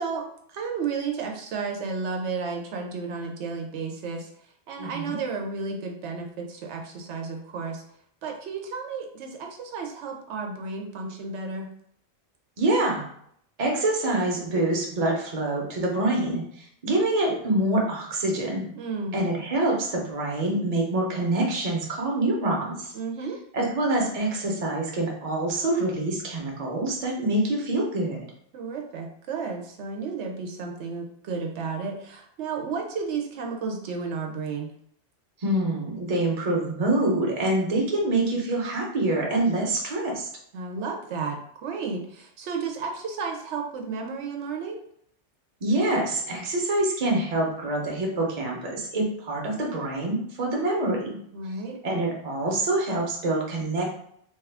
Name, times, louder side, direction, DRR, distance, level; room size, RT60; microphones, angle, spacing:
voice 1, 0.0-4.3 4.7-7.8 8.2-11.7 18.7-19.2 22.9-23.4 28.5-34.7 40.5-44.8 51.3-51.8, right 4 dB, 85° right, 2 dB, 0.9 m, -32 dB
voice 2, 4.8-5.2 12.6-13.0 13.6-18.7 19.1-22.9 23.5-28.2 35.4-40.3 45.6-51.2 51.8-53.8, right 2 dB, 40° right, -1 dB, 0.8 m, -26 dB
2.9 x 2.4 x 3.3 m, 0.68 s
omnidirectional pair, 1.2 m